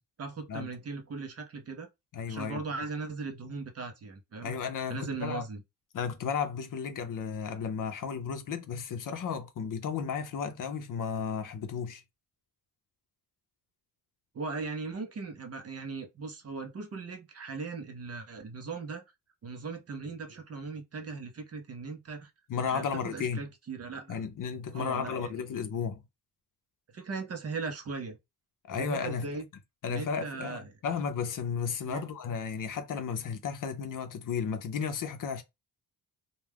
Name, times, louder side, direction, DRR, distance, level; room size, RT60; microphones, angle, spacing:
voice 1, 0.2-1.9 2.3-4.5 4.9-5.6 14.3-19.0 19.4-22.3 22.7-24.2 24.7-25.4 26.9-28.2 28.8-29.5 29.9-30.7 31.8-32.0, right 4 dB, 40° right, 0.6 m, -38 dB
voice 2, 2.1-2.6 4.4-5.4 5.9-12.0 22.5-23.4 24.1-26.0 28.7-29.3 29.8-35.4, left 6 dB, 55° left, 0.6 m, -34 dB
2.3 x 2.2 x 3.3 m
cardioid pair, 110°, 39 cm